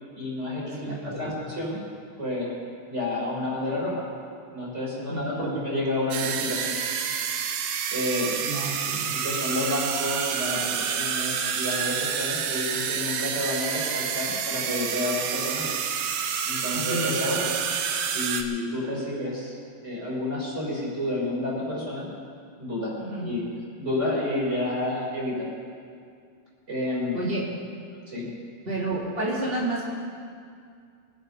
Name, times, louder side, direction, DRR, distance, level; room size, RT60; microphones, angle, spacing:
voice 1, 0.1-1.8 2.2-2.5 2.9-4.1 4.5-6.8 7.9-8.3 9.1-15.7 16.4-17.5 18.0-19.6 19.8-22.1 22.6-22.9 23.2-23.5 23.8-25.5 26.7-27.2 28.1-28.4, left 1 dB, 15° right, -4 dB, 3.9 m, -30 dB
voice 2, 0.8-1.4 5.1-5.6 8.5-9.1 16.6-17.1 23.0-23.3 27.1-27.4 28.6-29.9, right 1 dB, 50° right, -5 dB, 0.7 m, -30 dB
sound 1, 6.1-18.4, right 7 dB, 75° right, 2.4 m, -28 dB
23.0 x 9.1 x 5.5 m, 2.3 s
omnidirectional pair, 5.0 m